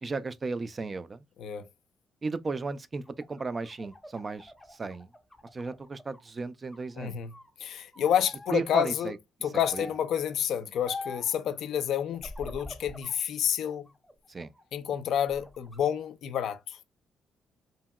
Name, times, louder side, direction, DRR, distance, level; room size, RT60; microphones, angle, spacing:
voice 1, 0.0-1.2 2.2-5.1 5.5-7.2 8.5-9.2 9.7-9.9 14.3-14.5, right 4 dB, 30° right, 0.3 m, -35 dB
sound 1, 3.1-6.3 6.7-7.5 7.9-8.6 9.6-10.1 10.9-11.4 12.1-13.2 13.7-14.6 15.1-15.8, left 2 dB, 5° left, 0.6 m, -45 dB
voice 2, 7.0-7.3 7.6-9.1 9.4-13.9 14.7-16.8, left 9 dB, 75° left, 0.4 m, -29 dB
2.8 x 2.7 x 2.2 m
cardioid pair, 90°, 0 cm